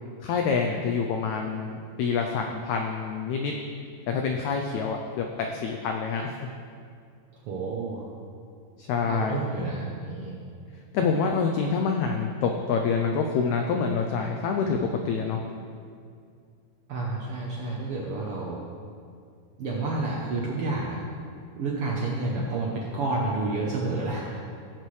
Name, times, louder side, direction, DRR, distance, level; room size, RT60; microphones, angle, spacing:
voice 1, 0.2-3.5 4.1-6.5 8.8-9.4 10.9-15.4, left 5 dB, 80° left, 3 dB, 1.6 m, -27 dB
voice 2, 7.5-8.1 9.1-10.4 16.9-18.6 19.6-21.0 21.6-24.4, right 3 dB, 80° right, -3 dB, 1.3 m, -30 dB
16.5 x 7.7 x 3.2 m, 2.3 s
omnidirectional pair, 3.9 m